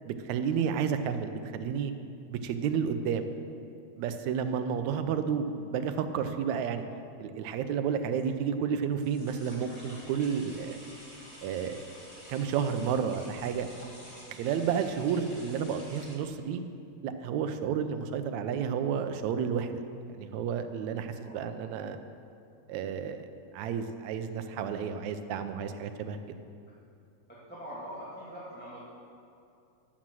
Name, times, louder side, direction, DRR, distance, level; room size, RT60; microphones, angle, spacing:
voice 1, 0.1-1.9 2.3-3.3 4.0-6.8 7.2-10.8 11.4-11.9 12.3-13.7 14.3-16.6 17.0-19.8 20.1-22.0 22.7-23.3 23.5-26.2, right 7 dB, 80° right, 8 dB, 1.9 m, -31 dB
sound 1, 8.1-16.2, equal, 20° left, 1.7 m, -49 dB
voice 2, 27.3-29.1, equal, 5° left, -8 dB, 1.3 m, -43 dB
11.5 x 7.3 x 7.5 m, 2.5 s
omnidirectional pair, 3.4 m